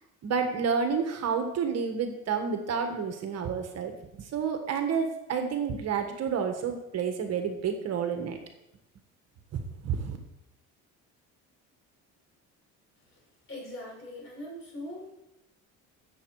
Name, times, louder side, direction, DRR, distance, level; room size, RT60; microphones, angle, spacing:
voice 1, 0.2-8.4 9.8-10.2, right 6 dB, 50° right, 5 dB, 1.5 m, -30 dB
voice 2, 13.5-15.1, left 1 dB, 40° left, -1 dB, 5.3 m, -41 dB
14.5 x 7.3 x 4.8 m, 0.90 s
cardioid pair, 140°, 32 cm